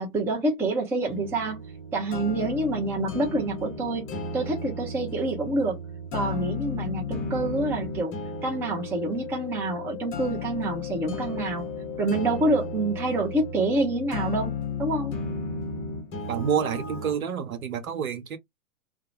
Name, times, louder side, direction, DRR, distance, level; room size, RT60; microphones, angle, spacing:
voice 1, 0.0-1.6 1.9-4.0 4.3-5.8 6.1-8.1 8.4-11.7 12.0-14.5 14.8-15.1, right 2 dB, 5° right, 0.4 m, -27 dB
sound 1, 1.0-17.1, left 3 dB, 30° left, 0.9 m, -35 dB
Wind instrument woodwind instrument, 7.3-14.4, left 15 dB, 65° left, 0.7 m, -41 dB
voice 2, 16.3-18.4, right 8 dB, 80° right, 0.9 m, -28 dB
2.3 x 2.1 x 2.9 m
hypercardioid pair, 115°, 42 cm